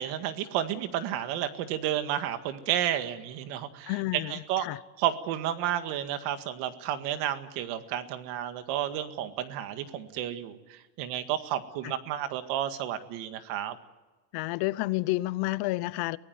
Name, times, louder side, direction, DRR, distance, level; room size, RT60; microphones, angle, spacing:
voice 1, 0.0-4.6 5.0-13.8, right 11 dB, 75° right, 2.0 m, -31 dB
voice 2, 3.9-4.8 11.8-11.9 14.3-16.2, left 19 dB, 65° left, 0.9 m, -30 dB
24.0 x 17.5 x 9.4 m
cardioid pair, 155°, 42 cm